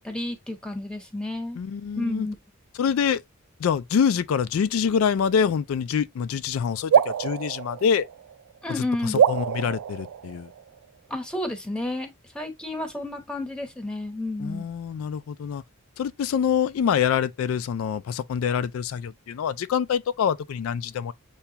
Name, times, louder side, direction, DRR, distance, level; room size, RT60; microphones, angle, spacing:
voice 1, 0.0-1.6 2.0-2.4 8.6-9.2 11.1-12.1 12.3-14.7, left 1 dB, 5° left, 0.9 m, -31 dB
voice 2, 1.6-2.3 2.8-3.2 3.6-8.1 8.7-10.5 14.4-15.6 16.0-21.1, left 7 dB, 75° left, 0.3 m, -25 dB
sound 1, 6.9-8.6 9.1-10.8, right 8 dB, 85° right, 0.3 m, -24 dB
6.9 x 2.3 x 2.8 m
head